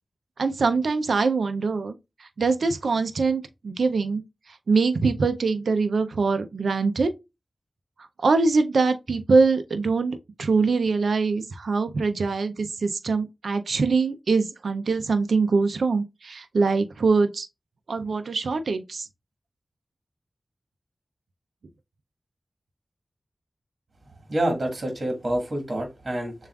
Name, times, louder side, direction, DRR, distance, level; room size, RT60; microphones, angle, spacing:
voice 1, 0.4-1.9 2.4-4.2 4.7-7.1 8.2-17.5 17.9-19.1, right 4 dB, 90° right, 0.4 m, -23 dB
voice 2, 24.3-26.3, right 1 dB, 45° right, 1.4 m, -27 dB
6.7 x 2.4 x 2.3 m
wide cardioid pair, 80°, 0 cm